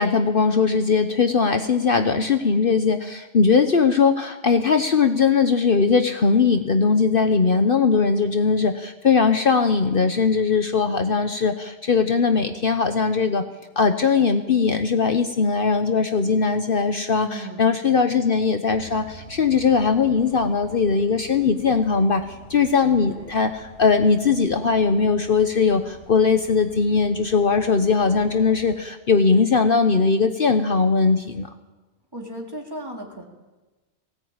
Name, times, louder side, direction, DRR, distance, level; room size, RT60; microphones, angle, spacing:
voice 1, 0.0-13.4 13.8-31.5, left 5 dB, 50° left, 8 dB, 1.1 m, -20 dB
voice 2, 17.2-17.8 23.0-23.3 32.1-33.2, right 1 dB, 20° right, -1 dB, 3.5 m, -36 dB
sound 1, 18.7-28.8, equal, 80° left, 5.9 m, -47 dB
19.5 x 17.0 x 8.8 m, 1.2 s
omnidirectional pair, 1.2 m